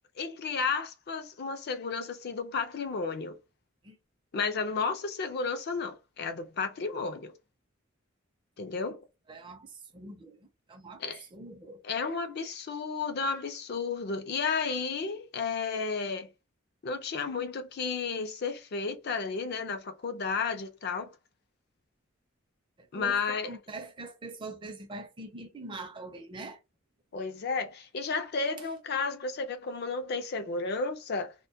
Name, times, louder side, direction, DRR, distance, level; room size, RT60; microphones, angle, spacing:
voice 1, 0.2-3.4 4.3-7.3 8.6-9.0 11.0-11.2 11.8-16.3 16.8-21.1 22.9-23.5 27.1-31.3, left 4 dB, 50° left, 0.4 m, -32 dB
voice 2, 9.3-11.8 22.8-26.6 28.6-28.7, right 2 dB, 25° right, 0.5 m, -43 dB
2.2 x 2.1 x 2.6 m
head